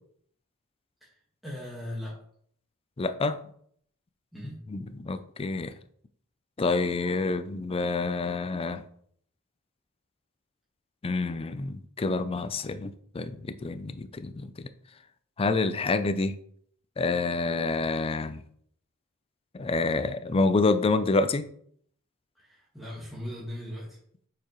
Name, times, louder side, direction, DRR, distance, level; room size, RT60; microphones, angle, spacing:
voice 1, 1.4-2.1 4.3-4.6 22.3-24.0, left 1 dB, ahead, -7 dB, 1.5 m, -38 dB
voice 2, 3.0-3.4 4.7-5.7 6.6-8.8 11.0-14.7 15.4-16.4 17.0-18.4 19.5-21.5, left 3 dB, 25° left, 11 dB, 0.4 m, -28 dB
8.6 x 4.6 x 3.1 m, 0.63 s
head